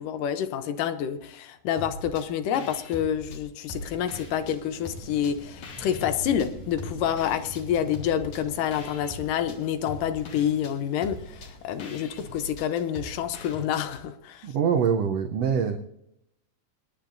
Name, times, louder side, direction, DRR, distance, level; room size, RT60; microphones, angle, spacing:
voice 1, 0.0-14.5, left 9 dB, 80° left, 10 dB, 2.4 m, -28 dB
sound 1, 1.8-2.3 2.5-4.6 4.9-6.5 6.8-14.0, left 2 dB, 55° left, 2.8 m, -42 dB
Thunder, 3.7-12.6, equal, 20° left, 0.8 m, -46 dB
voice 2, 14.4-15.8, right 7 dB, 80° right, 5 dB, 1.4 m, -24 dB
25.0 x 10.5 x 2.6 m, 0.79 s
omnidirectional pair, 3.9 m